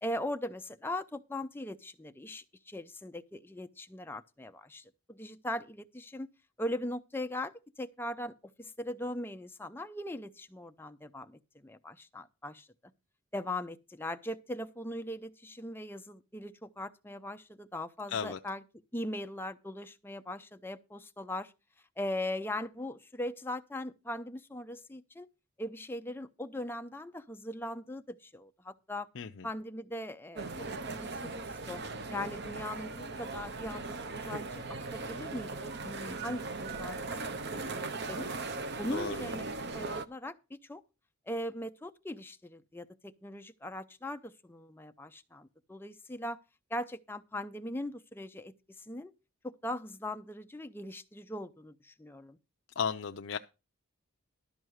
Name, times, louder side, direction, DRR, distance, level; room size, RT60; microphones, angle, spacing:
voice 1, 0.0-6.3 6.6-12.7 13.3-18.6 18.9-21.5 22.0-25.3 25.6-29.1 29.4-30.5 30.9-31.8 32.1-37.0 37.3-38.3 38.8-40.8 41.3-46.4 46.7-49.1 49.4-52.4, left 1 dB, 10° left, 0.5 m, -40 dB
voice 2, 29.2-29.5 38.9-39.2 52.8-53.4, left 6 dB, 60° left, 0.5 m, -34 dB
sound 1, 30.4-40.1, right 3 dB, 50° right, 0.7 m, -39 dB
12.5 x 5.6 x 6.3 m
head